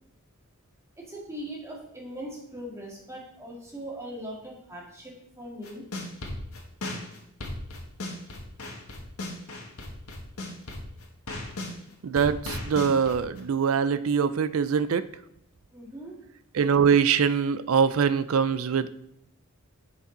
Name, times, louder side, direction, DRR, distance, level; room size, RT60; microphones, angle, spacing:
voice 1, 1.0-5.9 15.7-16.2, equal, 15° right, -3 dB, 1.9 m, -40 dB
sound 1, 5.6-11.7 12.2-13.4, left 1 dB, 85° left, 1.7 m, -36 dB
voice 2, 12.0-15.0 16.5-18.9, right 6 dB, 75° right, 14 dB, 0.4 m, -23 dB
10.0 x 5.1 x 3.9 m, 0.75 s
head